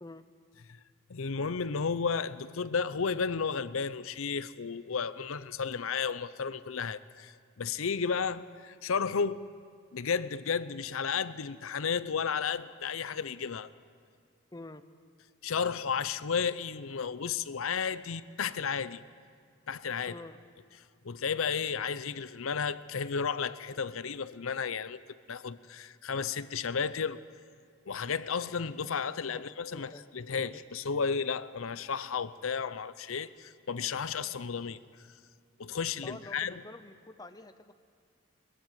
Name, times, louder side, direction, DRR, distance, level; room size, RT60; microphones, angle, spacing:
voice 1, 1.1-9.4 9.9-13.7 15.4-19.0 19.7-20.1 21.0-27.2 27.9-34.8 35.6-36.5, left 6 dB, 70° left, 0.6 m, -33 dB
voice 2, 14.5-14.8 20.1-20.4 29.3-30.0 30.3-30.5 36.0-37.7, left 2 dB, 20° left, 0.7 m, -47 dB
21.0 x 14.5 x 9.3 m
head